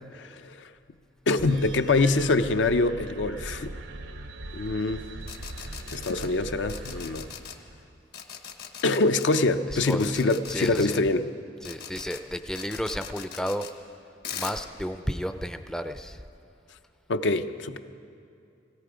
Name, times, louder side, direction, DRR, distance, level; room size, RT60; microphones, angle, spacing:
voice 1, 0.1-0.7 1.3-3.7 4.5-5.0 5.9-7.3 8.8-11.3 17.1-17.8, left 3 dB, 75° left, 9 dB, 0.6 m, -25 dB
sound 1, 1.4-8.0, right 1 dB, 85° right, 0.9 m, -40 dB
sound 2, 5.2-6.3 6.7-7.6 8.1-9.4 9.8-11.0 11.6-12.2 12.6-13.7 14.2-14.6, left 8 dB, 60° left, 1.1 m, -40 dB
voice 2, 9.9-11.0 11.7-13.6 14.3-16.2, equal, 5° left, 8 dB, 0.4 m, -32 dB
17.0 x 17.0 x 5.0 m, 2.6 s
head